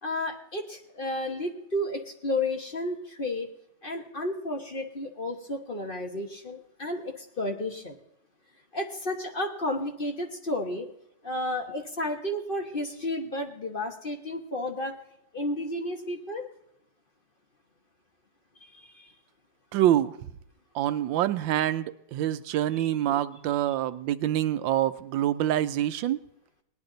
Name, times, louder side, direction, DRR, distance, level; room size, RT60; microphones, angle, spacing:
voice 1, 0.0-3.5 3.8-8.0 8.7-10.9 11.2-15.0 15.3-16.5 18.7-19.1 22.8-22.9, left 1 dB, 35° left, 3 dB, 1.1 m, -32 dB
voice 2, 19.7-20.2 20.7-26.2, right 12 dB, 90° right, 13 dB, 1.4 m, -26 dB
18.5 x 11.0 x 3.9 m, 0.80 s
omnidirectional pair, 2.0 m